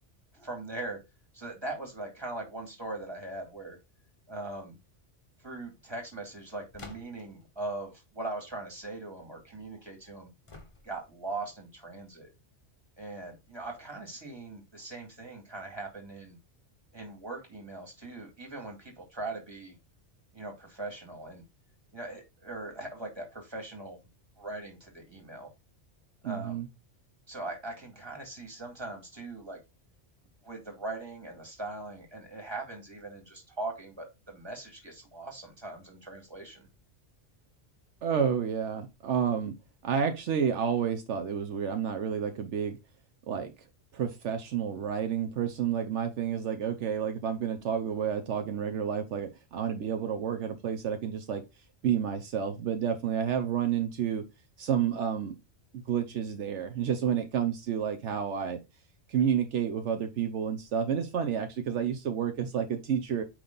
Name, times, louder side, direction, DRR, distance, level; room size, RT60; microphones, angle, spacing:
voice 1, 0.3-1.0 1.3-3.8 4.3-4.8 5.4-10.3 10.8-12.3 13.0-16.4 16.9-19.7 20.3-21.4 21.9-24.0 24.4-25.5 26.2-26.6 27.3-29.6 30.4-36.7, right 2 dB, 20° right, 1 dB, 2.5 m, -40 dB
sound 1, 6.7-7.4 10.5-11.2, left 3 dB, 25° left, 1.1 m, -49 dB
voice 2, 26.2-26.7 38.0-39.6 39.8-42.8 43.3-43.5 43.9-51.4 51.8-54.3 54.6-55.4 55.7-58.6 59.1-63.2, right 8 dB, 75° right, 7 dB, 1.0 m, -30 dB
8.9 x 3.3 x 3.9 m, 0.24 s
omnidirectional pair, 1.2 m